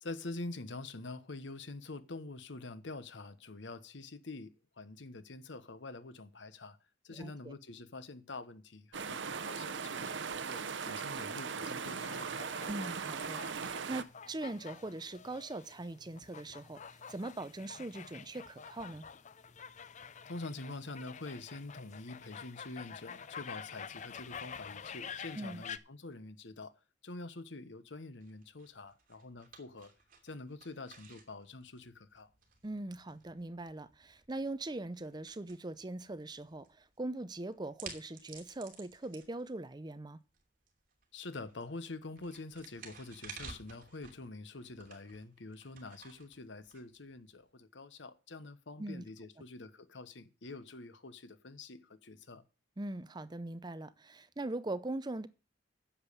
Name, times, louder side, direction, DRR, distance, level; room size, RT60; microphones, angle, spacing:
voice 1, 0.0-6.8 7.0-12.3 20.3-26.7 27.0-29.9 30.2-32.3 41.1-52.4, left 2 dB, 70° left, 1.1 m, -46 dB
voice 2, 7.1-7.5 12.7-19.0 25.4-25.6 32.6-40.2 48.8-49.0 52.8-55.3, right 2 dB, 25° right, 0.6 m, -41 dB
sound 1, 8.9-14.0, right 6 dB, 70° right, 0.8 m, -39 dB
sound 2, 11.8-25.8, left 7 dB, 40° left, 0.6 m, -48 dB
sound 3, 28.2-47.4, right 5 dB, 50° right, 2.9 m, -55 dB
10.0 x 7.3 x 6.8 m
head